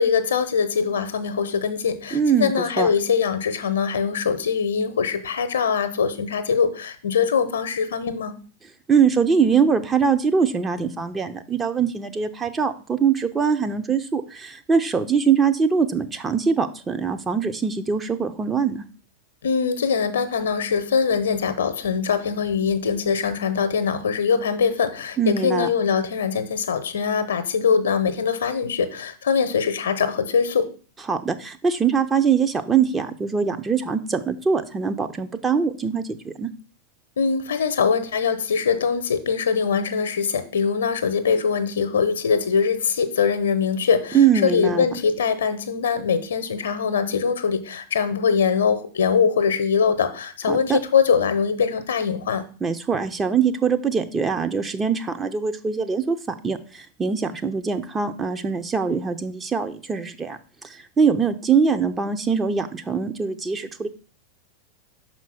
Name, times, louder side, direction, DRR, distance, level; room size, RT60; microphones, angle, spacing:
voice 1, 0.0-8.4 19.4-30.7 37.2-52.4, left 6 dB, 65° left, 11 dB, 0.8 m, -22 dB
voice 2, 2.1-2.9 8.9-18.8 25.2-25.7 31.1-36.5 44.1-44.8 50.5-50.8 52.6-56.2 56.4-60.4 60.7-63.9, right 6 dB, 15° right, 8 dB, 0.6 m, -22 dB
6.0 x 4.4 x 5.8 m, 0.39 s
figure-of-eight pair, 90°, 0 cm